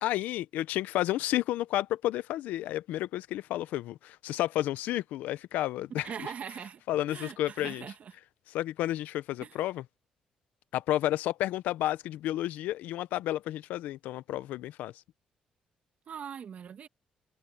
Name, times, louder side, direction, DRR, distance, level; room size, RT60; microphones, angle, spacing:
voice 1, 0.0-6.3 6.9-7.9 8.5-9.8 10.7-14.9, left 14 dB, 85° left, 0.7 m, -31 dB
voice 2, 5.9-6.8 7.1-8.1 9.4-9.6 16.1-16.9, right 7 dB, 60° right, 2.4 m, -41 dB
supercardioid pair, 65°, 3 cm